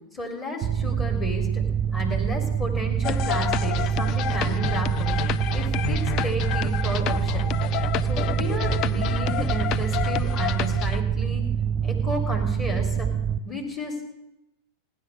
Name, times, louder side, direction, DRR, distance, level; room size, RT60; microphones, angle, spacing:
voice 1, 0.1-1.6 1.9-5.2 5.5-7.5 8.0-11.4 11.8-13.1 13.4-14.0, left 1 dB, 20° left, 1 dB, 4.1 m, -33 dB
Mechanical fan, 0.6-13.4, right 8 dB, 25° right, 0.8 m, -25 dB
sound 1, 3.0-11.0, left 10 dB, 35° left, 0.6 m, -29 dB
16.5 x 10.5 x 7.0 m, 0.90 s
figure-of-eight pair, 90°, 0 cm